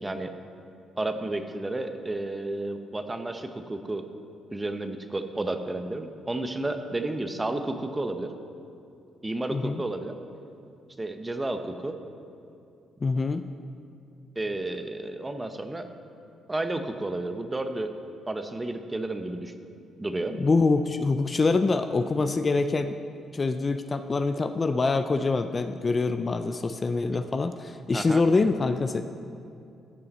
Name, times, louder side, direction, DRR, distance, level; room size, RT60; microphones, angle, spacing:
voice 1, 0.0-0.3 1.0-4.1 4.5-8.3 9.2-10.1 11.0-12.0 14.4-15.9 16.5-17.9 18.3-19.5 20.0-20.3 27.9-28.2, right 2 dB, 15° right, 7 dB, 0.7 m, -31 dB
voice 2, 9.5-9.8 13.0-13.4 20.4-23.0 23.3-29.0, left 3 dB, 30° left, 9 dB, 0.4 m, -25 dB
16.0 x 5.5 x 4.2 m, 2.5 s
cardioid pair, 90°, 0 cm